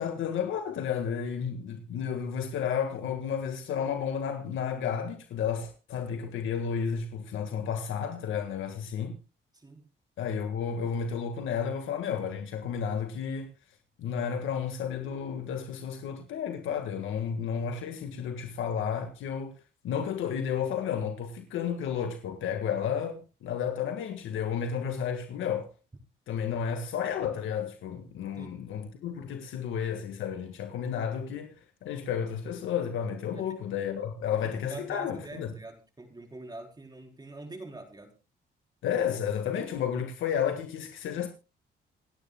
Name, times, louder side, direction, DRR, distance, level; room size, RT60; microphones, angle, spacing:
voice 1, 0.0-9.2 10.2-13.5 14.0-19.5 19.8-25.7 26.3-35.5 38.8-41.3, left 7 dB, 80° left, 1.8 m, -32 dB
voice 2, 34.4-38.1, right 2 dB, 20° right, 4.2 m, -44 dB
27.5 x 10.0 x 2.3 m
cardioid pair, 90°, 20 cm